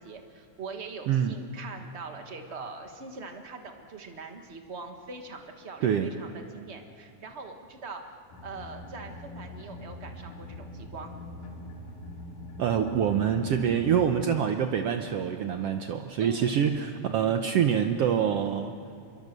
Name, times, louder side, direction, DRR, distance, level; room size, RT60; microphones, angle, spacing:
voice 1, 0.0-8.0 8.4-11.2 16.2-16.6, right 4 dB, 50° right, 4 dB, 0.7 m, -42 dB
voice 2, 5.8-6.1 12.6-18.7, right 8 dB, 75° right, 6 dB, 1.4 m, -26 dB
sound 1, 8.3-14.3, left 1 dB, 90° left, 4.7 m, -43 dB
26.5 x 23.0 x 6.7 m, 2.6 s
omnidirectional pair, 3.7 m